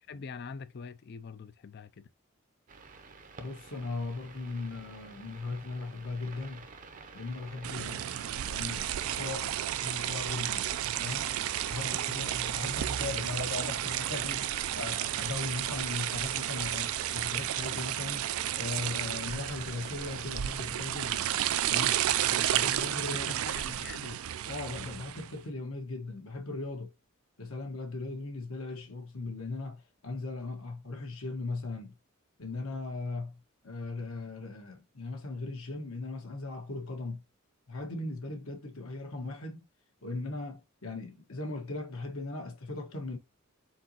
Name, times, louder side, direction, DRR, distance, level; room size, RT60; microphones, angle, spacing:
voice 1, 0.1-2.1 23.0-24.2, left 5 dB, 50° left, 0.4 m, -44 dB
sound 1, 2.7-20.2, right 4 dB, 35° right, 0.6 m, -49 dB
voice 2, 3.4-6.7 7.1-8.1 8.4-10.7 11.0-11.3 11.7-14.5 14.7-18.3 18.5-21.4 21.7-21.9 22.3-23.3 24.4-26.9 27.4-32.0 32.4-33.4 33.6-37.2 37.7-39.7 40.0-43.2, left 3 dB, 80° left, 1.4 m, -38 dB
sound 2, 7.6-25.3, right 11 dB, 80° right, 0.4 m, -32 dB
4.5 x 4.0 x 2.8 m
head